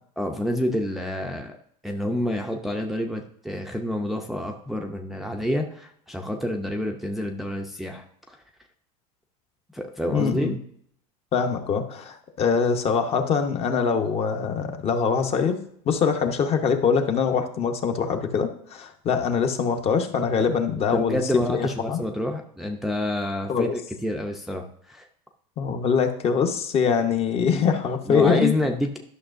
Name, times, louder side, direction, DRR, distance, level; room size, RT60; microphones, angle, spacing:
voice 1, 0.2-1.6 1.8-8.4 9.7-10.6 20.4-20.5 20.8-25.1 28.1-29.0, left 1 dB, ahead, 2 dB, 0.5 m, -28 dB
voice 2, 10.1-10.6 11.3-22.0 23.5-23.7 25.6-28.5, left 6 dB, 35° left, 6 dB, 0.9 m, -23 dB
11.5 x 6.0 x 2.6 m, 0.67 s
supercardioid pair, 130°, 17 cm